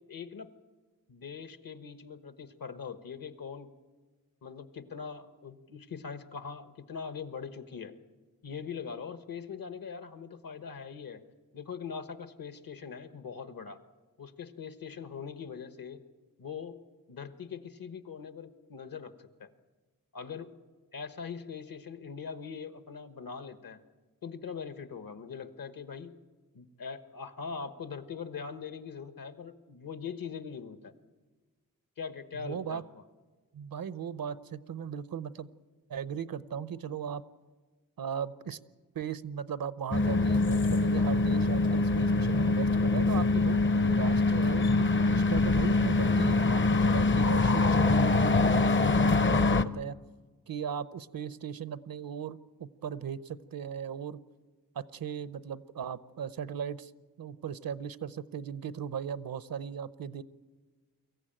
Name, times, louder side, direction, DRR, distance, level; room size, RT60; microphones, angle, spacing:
voice 1, 0.1-0.5 1.1-3.7 4.4-8.0 8.4-11.2 11.5-13.8 14.2-16.0 16.4-16.8 17.1-19.5 20.1-20.5 20.9-23.8 24.2-26.2 26.5-30.9 32.0-32.8, left 6 dB, 70° left, 10 dB, 1.3 m, -42 dB
voice 2, 32.3-32.8 33.5-35.5 35.9-37.2 38.0-38.6 38.9-50.0 50.5-54.2 54.7-56.9 57.2-60.2, right 7 dB, 75° right, 15 dB, 0.8 m, -37 dB
sound 1, 39.9-49.6, left 3 dB, 35° left, 0.6 m, -24 dB
23.5 x 14.5 x 8.9 m, 1.3 s
wide cardioid pair, 90°, 35 cm